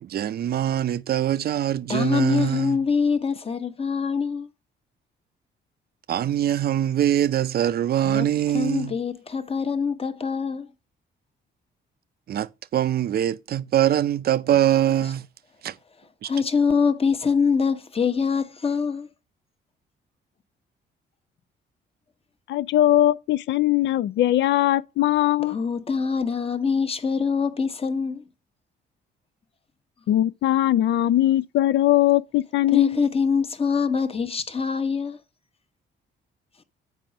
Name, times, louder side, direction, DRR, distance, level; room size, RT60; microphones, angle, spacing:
voice 1, 0.0-2.8 6.1-9.0 12.3-15.3 15.6-15.8 16.2-16.3, right 11 dB, 50° right, 0.5 m, -23 dB
voice 2, 1.9-4.5 8.0-8.3 8.5-10.7 16.2-19.1 25.5-28.2 32.7-35.2, left 5 dB, 30° left, 1.0 m, -24 dB
voice 3, 22.5-25.6 30.1-33.0, left 13 dB, 65° left, 0.4 m, -20 dB
7.5 x 4.8 x 5.2 m
cardioid pair, 90°, 20 cm